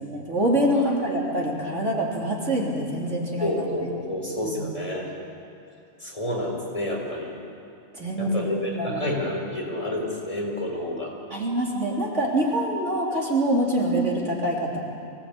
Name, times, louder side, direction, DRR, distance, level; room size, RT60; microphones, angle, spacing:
voice 1, 0.0-3.7 4.4-4.6 7.9-9.1 11.3-14.8, right 1 dB, 60° right, -3 dB, 3.8 m, -25 dB
voice 2, 3.4-5.1 6.0-7.3 8.2-11.1, left 1 dB, 25° left, -2 dB, 4.5 m, -29 dB
24.5 x 17.5 x 8.7 m, 2.5 s
omnidirectional pair, 1.4 m